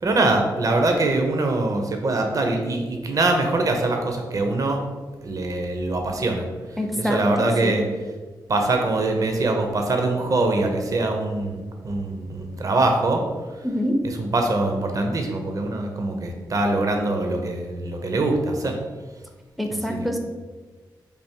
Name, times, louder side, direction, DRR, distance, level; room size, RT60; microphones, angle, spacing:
voice 1, 0.0-4.8 5.2-6.5 7.0-7.8 8.5-13.2 14.0-18.8 19.7-20.1, right 2 dB, 45° right, 3 dB, 0.6 m, -23 dB
voice 2, 6.8-7.8 13.6-14.0 19.6-20.2, equal, ahead, 3 dB, 0.5 m, -25 dB
3.3 x 2.5 x 4.4 m, 1.3 s
cardioid pair, 65°, 8 cm